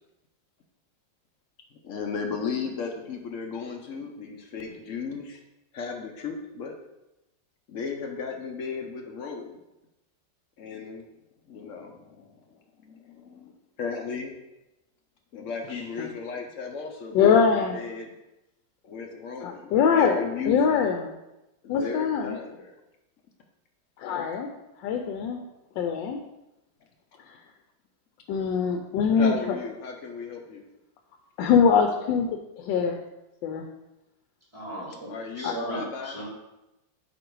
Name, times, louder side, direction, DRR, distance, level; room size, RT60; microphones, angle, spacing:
voice 1, 1.8-5.4 5.7-6.7 7.7-9.6 10.6-11.1 11.5-13.5 13.8-14.3 15.3-18.1 18.8-20.9 21.6-22.7 29.1-30.6 35.1-36.2, left 5 dB, 65° left, 3 dB, 0.8 m, -35 dB
voice 2, 15.7-16.1 17.1-17.8 19.4-20.2 20.5-21.1 21.7-22.4 24.0-24.5 24.8-25.4 25.8-26.2 28.3-29.3 31.4-33.0 33.4-33.6 35.4-35.5, left 6 dB, 80° left, 4 dB, 1.3 m, -23 dB
voice 3, 34.5-36.2, equal, 15° right, -6 dB, 2.4 m, -36 dB
8.1 x 3.1 x 4.6 m, 0.95 s
omnidirectional pair, 2.0 m